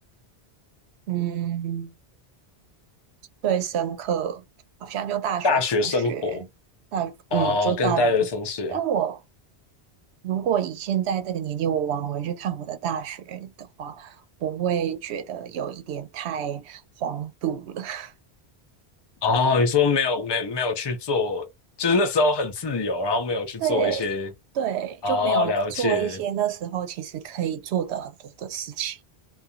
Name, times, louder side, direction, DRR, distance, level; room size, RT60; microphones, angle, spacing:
voice 1, 1.1-1.9 3.4-4.4 4.8-6.5 6.9-8.1 8.7-9.2 10.2-18.1 23.6-24.1 24.5-29.0, right 9 dB, 85° right, 0.8 m, -28 dB
voice 2, 5.4-6.4 7.3-8.8 19.2-21.5 21.8-24.3 25.0-26.2, left 3 dB, 30° left, 0.5 m, -23 dB
2.4 x 2.3 x 2.6 m
omnidirectional pair, 1.1 m